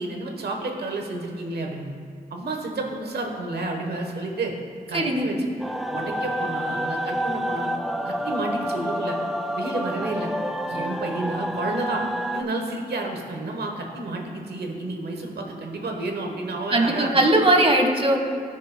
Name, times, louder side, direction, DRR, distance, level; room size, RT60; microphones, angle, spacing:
voice 1, 0.0-1.9 2.3-4.5 4.9-5.5 5.9-7.7 8.0-9.2 9.6-10.3 10.7-12.0 12.3-17.2, right 2 dB, 90° right, 2 dB, 1.1 m, -30 dB
voice 2, 4.9-5.3 16.7-18.2, right 1 dB, 35° right, 3 dB, 1.3 m, -19 dB
sound 1, 5.6-12.4, equal, ahead, 0.4 m, -28 dB
15.0 x 6.3 x 2.2 m, 2.3 s
cardioid pair, 45°, 16 cm